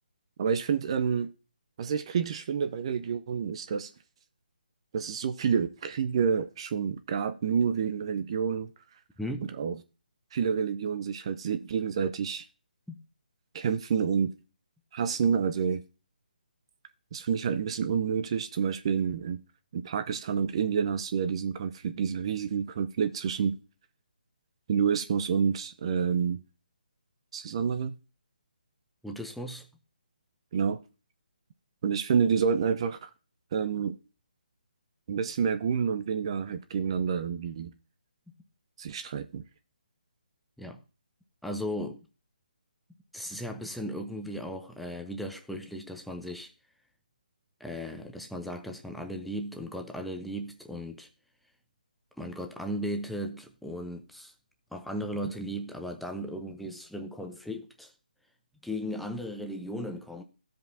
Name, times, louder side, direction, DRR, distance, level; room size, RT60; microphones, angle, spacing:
voice 1, 0.4-1.3 1.8-3.9 4.9-8.7 9.4-9.8 10.3-12.5 13.5-14.3 14.9-15.8 17.1-19.4 19.7-23.5 24.7-26.4 27.3-27.9 30.5-30.8 31.8-33.1 33.5-34.0 35.1-37.7 38.8-39.4, right 6 dB, 35° right, 0.5 m, -28 dB
voice 2, 9.2-9.5 12.9-13.0 29.0-29.7 40.6-40.8 41.4-42.0 43.1-46.5 47.6-51.1 52.2-54.3 54.7-57.9 58.6-60.2, equal, ahead, 0.7 m, -36 dB
15.0 x 5.2 x 2.7 m
figure-of-eight pair, 145°, 5 cm